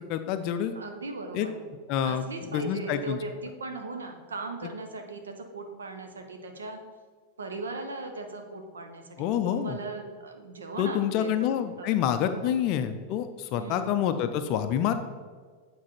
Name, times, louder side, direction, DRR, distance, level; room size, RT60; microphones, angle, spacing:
voice 1, 0.1-0.7 1.3-1.5 1.9-2.2 2.5-3.2 9.2-9.8 10.8-14.9, left 9 dB, 40° left, 9 dB, 0.4 m, -27 dB
voice 2, 0.7-1.6 2.0-6.8 7.4-11.9 12.3-12.5 13.5-14.0, right 3 dB, 70° right, 5 dB, 0.8 m, -38 dB
8.6 x 4.1 x 4.2 m, 1.5 s
figure-of-eight pair, 90°, 0 cm